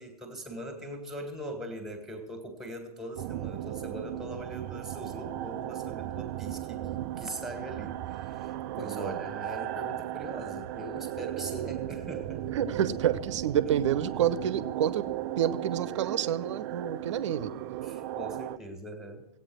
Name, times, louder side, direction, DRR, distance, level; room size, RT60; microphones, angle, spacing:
voice 1, 0.0-12.5 17.8-19.3, right 1 dB, ahead, 5 dB, 1.9 m, -41 dB
sound 1, 3.2-18.6, right 13 dB, 30° right, 0.4 m, -36 dB
voice 2, 8.7-9.2 12.5-15.0 15.4-17.5, right 9 dB, 50° right, 16 dB, 0.8 m, -29 dB
16.0 x 8.8 x 6.3 m, 0.82 s
figure-of-eight pair, 110°, 20 cm